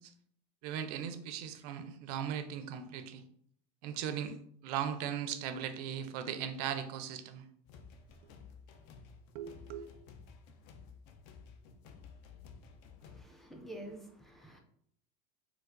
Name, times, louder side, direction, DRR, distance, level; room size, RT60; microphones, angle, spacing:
voice 1, 0.6-3.2 3.8-4.3 4.6-7.4 9.3-9.9, right 9 dB, 70° right, 9 dB, 0.5 m, -38 dB
sound 1, 7.7-13.2, left 5 dB, 60° left, 0.5 m, -54 dB
voice 2, 13.1-14.6, right 1 dB, ahead, 2 dB, 0.4 m, -48 dB
4.5 x 2.0 x 2.5 m, 0.66 s
supercardioid pair, 140°, 21 cm